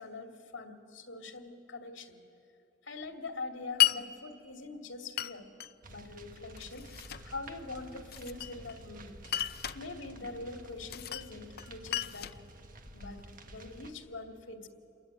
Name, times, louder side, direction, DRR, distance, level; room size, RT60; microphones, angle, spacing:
voice 1, 0.0-2.2 2.8-5.5 5.9-9.2 9.7-12.4 12.9-14.7, left 3 dB, 85° left, 4 dB, 2.4 m, -44 dB
Glass, 3.8-4.0 5.2-5.7 6.6-7.3 8.1-8.8 9.2-9.8 10.9-11.3 11.6-13.2, left 14 dB, 55° left, 0.7 m, -32 dB
sound 1, 5.8-13.9, right 2 dB, 45° right, 1.6 m, -51 dB
28.0 x 21.5 x 9.6 m, 2.7 s
head